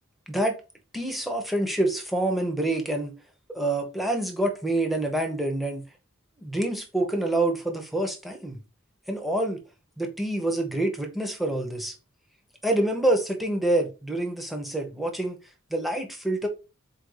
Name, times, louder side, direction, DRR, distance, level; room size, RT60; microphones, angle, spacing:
voice 1, 0.3-0.6 0.9-3.1 3.5-5.8 6.4-8.6 9.1-9.6 10.0-11.9 12.6-15.4 15.7-16.5, right 1 dB, ahead, 0.8 m, -27 dB
4.2 x 2.7 x 4.7 m
head